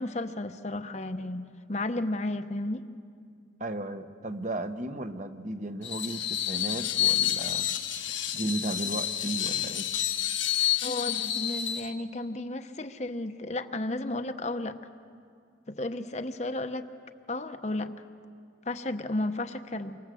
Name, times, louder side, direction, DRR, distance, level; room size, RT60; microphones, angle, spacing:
voice 1, 0.0-2.8 10.8-14.8 15.7-16.9 17.3-18.0 18.6-20.0, left 2 dB, 35° left, 8 dB, 0.9 m, -33 dB
voice 2, 3.6-7.7 8.3-9.9, right 1 dB, 40° right, 8 dB, 1.1 m, -35 dB
Screech, 5.8-11.9, left 11 dB, 80° left, 1.6 m, -29 dB
28.5 x 25.0 x 7.7 m, 2.3 s
head